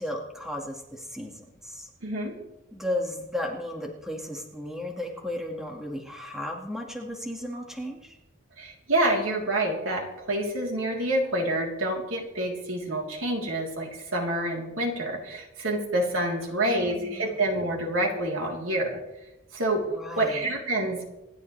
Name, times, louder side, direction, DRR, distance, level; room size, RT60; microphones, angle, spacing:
voice 1, 0.0-1.9 2.7-8.2 16.4-17.4 19.9-20.5, left 1 dB, ahead, 0 dB, 1.8 m, -35 dB
voice 2, 2.0-2.3 8.6-19.0 19.5-19.8 20.2-21.0, right 1 dB, 85° right, -1 dB, 3.4 m, -27 dB
26.5 x 11.0 x 3.3 m, 0.96 s
head